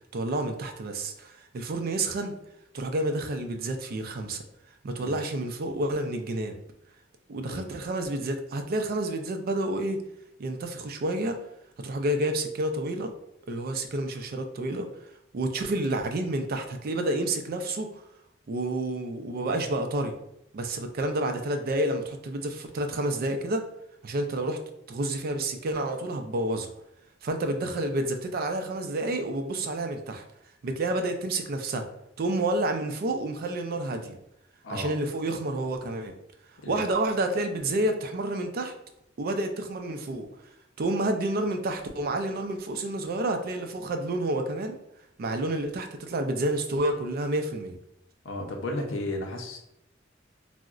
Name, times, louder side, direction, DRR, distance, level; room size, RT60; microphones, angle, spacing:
voice 1, 0.1-2.3 2.7-4.4 4.8-6.6 7.3-10.0 10.4-11.4 11.8-13.1 13.5-14.9 15.3-18.0 18.5-20.2 20.5-23.6 24.0-24.6 24.9-26.7 27.2-30.2 30.6-31.8 32.2-34.2 34.7-36.1 36.7-38.7 39.2-40.3 40.8-44.8 45.2-47.8, right 1 dB, 50° right, 6 dB, 0.4 m, -29 dB
voice 2, 48.2-49.6, left 1 dB, 90° left, 2 dB, 0.6 m, -34 dB
3.7 x 2.0 x 2.3 m, 0.80 s
head